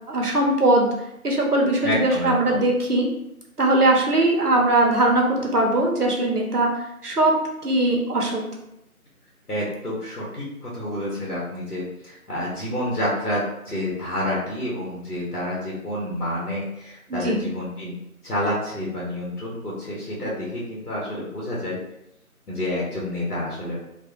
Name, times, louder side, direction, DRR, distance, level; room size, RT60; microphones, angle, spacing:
voice 1, 0.1-0.9 1.2-3.1 3.6-6.7 7.0-7.3 7.6-8.4 17.1-17.4, right 2 dB, 90° right, -1 dB, 1.1 m, -20 dB
voice 2, 1.8-2.6 9.5-18.0 18.2-21.8 22.5-23.8, left 1 dB, 85° left, -5 dB, 1.3 m, -29 dB
3.1 x 2.8 x 2.4 m, 0.84 s
figure-of-eight pair, 160°, 45 cm